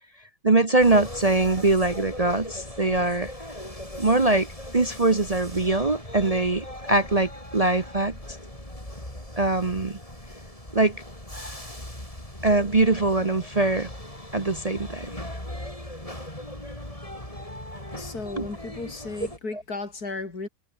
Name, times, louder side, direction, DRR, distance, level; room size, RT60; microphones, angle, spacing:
voice 1, 0.4-3.3 4.0-4.5 4.7-8.2 9.4-10.0 10.7-11.0 12.4-13.9 14.3-15.1 18.4-18.5 19.5-19.6, right 2 dB, 25° right, 1.0 m, -22 dB
sound 1, 0.8-19.4, left 1 dB, 20° left, 6.7 m, -39 dB
voice 2, 18.0-20.5, left 3 dB, 75° left, 4.4 m, -35 dB
omnidirectional pair, 1.7 m